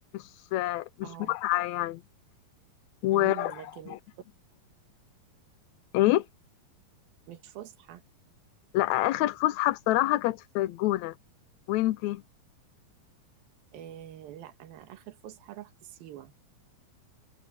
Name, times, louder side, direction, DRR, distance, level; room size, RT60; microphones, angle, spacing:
voice 1, 0.5-2.0 3.0-3.5 3.9-4.0 5.9-6.3 8.7-11.1 11.7-12.2, left 16 dB, 85° left, 1.6 m, -26 dB
voice 2, 1.0-1.4 3.1-4.0 7.3-8.0 13.7-16.3, right 12 dB, 80° right, 3.2 m, -45 dB
omnidirectional pair, 4.2 m